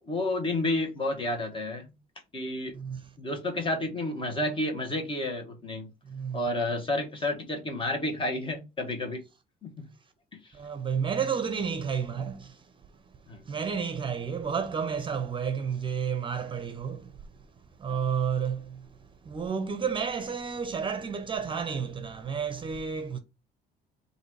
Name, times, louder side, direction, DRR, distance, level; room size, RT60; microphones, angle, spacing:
voice 1, 0.1-1.9 2.3-2.7 3.2-5.9 6.3-9.2 9.6-9.9 10.3-10.4 13.3-13.4 17.9-18.0, left 1 dB, 30° left, 1.4 m, -30 dB
voice 2, 2.7-3.1 6.0-6.4 10.5-17.3 17.8-23.2, right 6 dB, 30° right, 0.7 m, -31 dB
3.9 x 2.7 x 4.6 m
cardioid pair, 110°, 17 cm